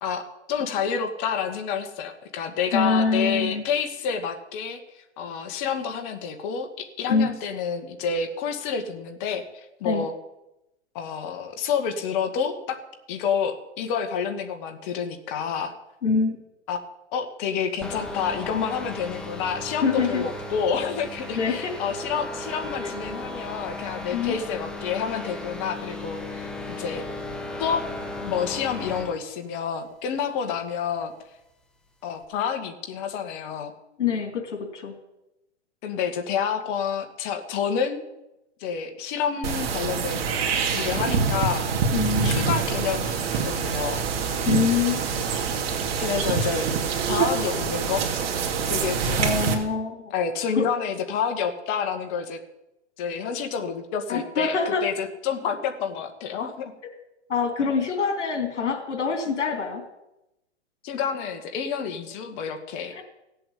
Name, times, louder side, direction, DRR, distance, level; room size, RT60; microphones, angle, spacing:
voice 1, 0.0-4.8 5.2-9.4 9.8-10.1 10.9-12.8 13.1-15.7 16.7-16.8 17.1-26.5 26.8-27.0 27.6-27.8 28.2-31.1 32.0-33.7 35.8-38.0 38.6-40.3 40.7-41.7 42.2-44.0 46.0-46.7 47.1-48.1 48.7-49.3 50.1-52.4 53.0-56.7 60.8-63.0, left 7 dB, 40° left, 6 dB, 2.1 m, -29 dB
voice 2, 2.7-3.6 7.1-7.3 9.8-10.1 16.0-16.4 19.8-20.2 21.4-21.8 22.8-22.9 24.1-24.4 34.0-34.9 41.9-42.5 44.5-45.1 49.2-50.1 50.6-50.7 54.1-54.9 57.3-59.8 62.9-63.0, left 5 dB, 80° left, 2 dB, 3.5 m, -25 dB
sound 1, 17.8-29.2, left 2 dB, ahead, 1.2 m, -35 dB
sound 2, 39.4-49.5, right 5 dB, 55° right, 2.6 m, -25 dB
16.5 x 7.8 x 8.6 m, 0.91 s
hypercardioid pair, 135°, 35 cm